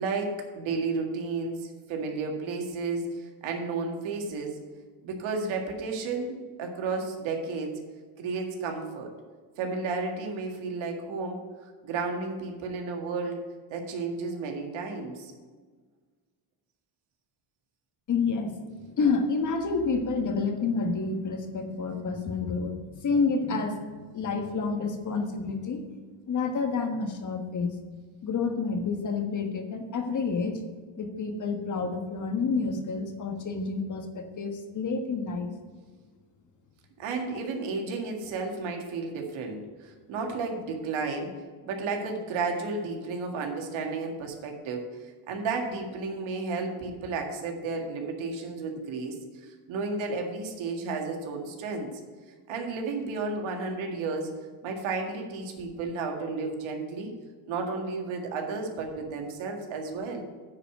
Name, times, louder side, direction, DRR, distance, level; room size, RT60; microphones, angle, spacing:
voice 1, 0.0-4.6 5.0-7.8 8.2-9.1 9.6-13.4 13.7-15.3 37.0-41.3 41.6-44.9 45.3-51.9 52.5-54.3 54.6-57.1 57.5-60.2, right 4 dB, 75° right, 3 dB, 2.0 m, -32 dB
voice 2, 18.1-18.6 19.0-25.8 26.3-27.8 28.2-30.6 31.0-35.5, left 4 dB, 40° left, 6 dB, 1.4 m, -29 dB
9.7 x 4.9 x 7.6 m, 1.5 s
cardioid pair, 115°, 47 cm